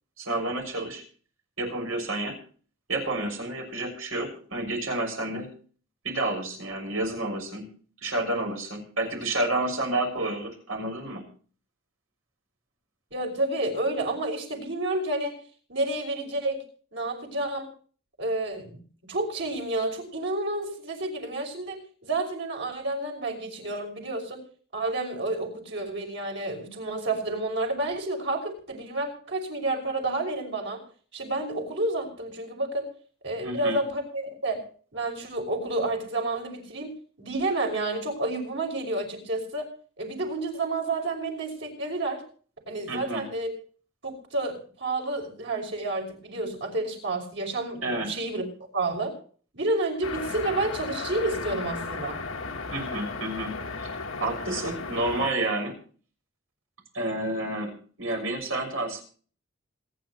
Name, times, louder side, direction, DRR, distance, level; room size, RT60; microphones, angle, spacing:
voice 1, 0.2-1.0 1.6-2.4 2.9-5.5 6.0-7.7 8.0-11.2 33.4-33.8 42.9-43.2 47.8-48.1 52.7-55.8 56.9-57.7 58.0-59.0, right 2 dB, 80° right, 3 dB, 6.5 m, -30 dB
voice 2, 13.1-15.4 15.7-16.6 16.9-17.7 18.2-18.8 19.1-24.4 24.7-30.8 31.1-32.9 33.2-34.6 34.9-36.9 37.2-39.7 40.0-42.2 42.7-43.5 44.0-48.4 48.7-49.1 49.5-52.2, right 2 dB, 60° right, 2 dB, 6.0 m, -30 dB
sound 1, 50.0-55.3, left 4 dB, 80° left, 1.4 m, -35 dB
26.5 x 10.0 x 3.1 m, 0.42 s
head